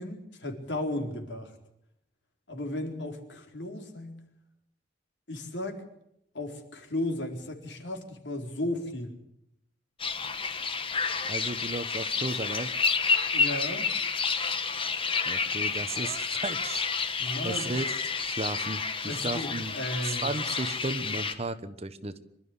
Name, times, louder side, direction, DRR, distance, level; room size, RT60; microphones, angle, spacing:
voice 1, 0.0-1.5 2.5-4.1 5.3-5.8 6.3-9.1 13.3-13.9 17.2-17.7 19.1-20.4, left 1 dB, 80° left, 4 dB, 4.2 m, -35 dB
sound 1, 10.0-21.3, left 5 dB, 30° left, 1.6 m, -30 dB
voice 2, 11.3-12.7 15.3-16.9 17.4-17.9 18.2-19.7 20.0-22.2, right 2 dB, 35° right, 12 dB, 1.2 m, -34 dB
25.5 x 12.5 x 9.8 m, 0.78 s
head